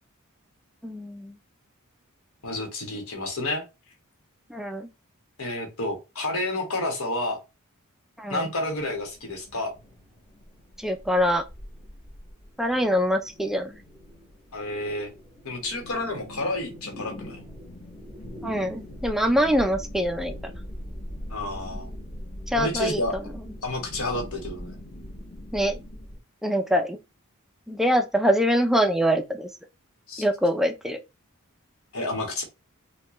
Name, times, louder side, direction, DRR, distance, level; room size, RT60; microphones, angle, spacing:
voice 1, 0.8-1.4 4.5-4.9 8.2-8.5 10.8-11.4 12.6-13.8 18.4-20.3 22.5-23.0 25.5-25.8 26.4-27.0 27.7-29.5 30.2-31.0, equal, ahead, 0.4 m, -24 dB
voice 2, 2.4-3.6 5.4-7.4 8.3-9.7 14.5-15.1 15.4-17.4 21.3-21.9 22.6-23.2 23.6-24.7 30.1-30.2 31.9-32.4, left 2 dB, 70° left, 1.3 m, -30 dB
sound 1, 8.7-26.2, equal, 25° left, 1.4 m, -41 dB
4.3 x 2.3 x 3.0 m
head